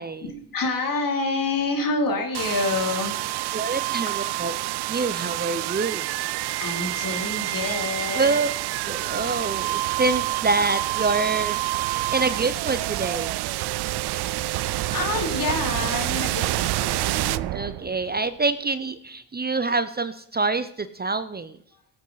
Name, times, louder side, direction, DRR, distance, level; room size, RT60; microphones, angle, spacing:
voice 1, 0.2-3.5 6.3-8.5 9.0-9.1 11.9-12.2 14.0-17.9 21.7-21.8, left 3 dB, 55° left, 3 dB, 3.1 m, -29 dB
sound 1, 2.3-18.2, right 17 dB, 70° right, 0.5 m, -27 dB
voice 2, 3.5-4.5 4.9-6.1 8.1-8.5 8.9-11.6 11.9-13.3 17.5-21.6, right 3 dB, 25° right, 12 dB, 0.7 m, -26 dB
17.0 x 8.5 x 4.1 m, 0.65 s
cardioid pair, 75°, 41 cm